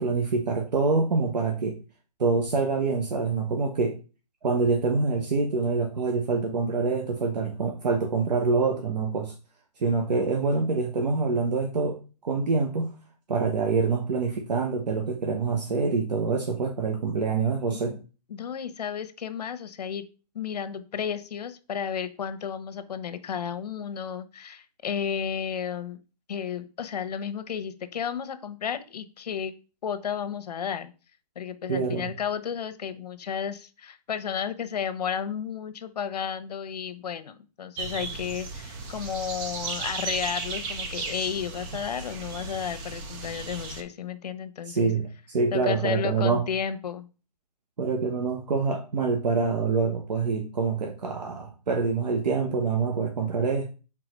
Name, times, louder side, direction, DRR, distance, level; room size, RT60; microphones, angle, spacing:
voice 1, 0.0-1.8 2.2-4.0 4.4-9.3 9.8-12.9 13.3-17.9 31.7-32.1 44.6-46.4 47.8-53.7, right 4 dB, 80° right, 3 dB, 1.2 m, -26 dB
voice 2, 18.3-20.0 20.3-26.0 26.3-29.5 29.8-30.9 31.4-44.9 45.5-47.1, left 7 dB, 70° left, 11 dB, 0.9 m, -32 dB
sound 1, 37.8-43.8, right 4 dB, 20° right, 0.6 m, -35 dB
4.8 x 3.8 x 5.1 m, 0.34 s
hypercardioid pair, 155°, 21 cm